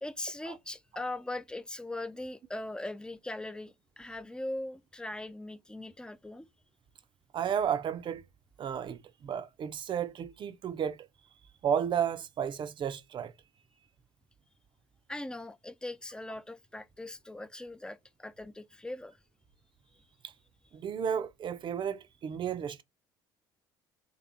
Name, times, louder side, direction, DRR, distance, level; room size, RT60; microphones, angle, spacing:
voice 1, 0.0-6.5 15.1-19.2, left 1 dB, 5° left, 0.5 m, -40 dB
voice 2, 7.3-8.2 8.6-11.0 11.6-13.3 20.7-22.8, right 8 dB, 45° right, 0.6 m, -32 dB
3.2 x 3.0 x 3.8 m
hypercardioid pair, 55°, 11 cm